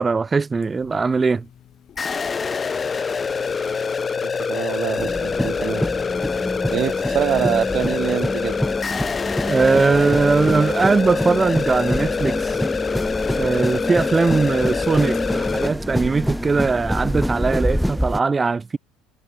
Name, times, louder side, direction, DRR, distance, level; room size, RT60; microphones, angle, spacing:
voice 1, 0.0-1.5 9.5-12.6 13.3-18.8, right 4 dB, 25° right, 2.0 m, -20 dB
sound 1, 0.5-18.2, left 9 dB, 45° left, 6.8 m, -46 dB
sound 2, 2.0-15.7, left 5 dB, 30° left, 0.9 m, -25 dB
voice 2, 4.2-5.8 6.7-8.6, right 11 dB, 50° right, 2.9 m, -25 dB
sound 3, 5.0-18.2, equal, ahead, 3.7 m, -26 dB
hypercardioid pair, 70°, 0 cm